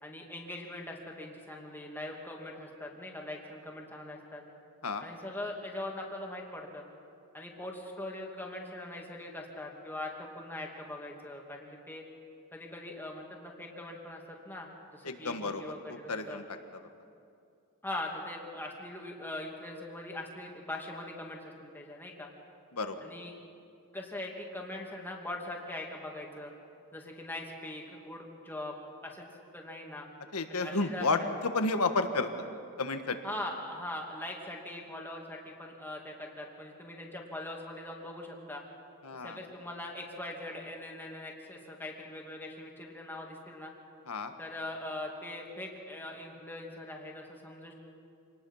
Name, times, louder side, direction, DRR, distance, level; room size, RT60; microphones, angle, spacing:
voice 1, 0.0-4.4 5.0-6.8 7.3-12.0 12.5-16.4 17.8-22.3 23.0-23.3 23.9-26.5 26.9-28.7 29.0-29.2 29.5-30.1 30.5-31.3 33.2-38.6 39.2-43.7 44.4-47.7, left 1 dB, 10° left, -1 dB, 2.6 m, -41 dB
voice 2, 15.0-15.6 15.9-16.4 16.7-16.8 22.7-23.0 30.3-32.3 32.8-33.2 39.0-39.4 44.1-44.3, left 3 dB, 80° left, 7 dB, 1.5 m, -31 dB
27.0 x 19.0 x 5.7 m, 2.5 s
head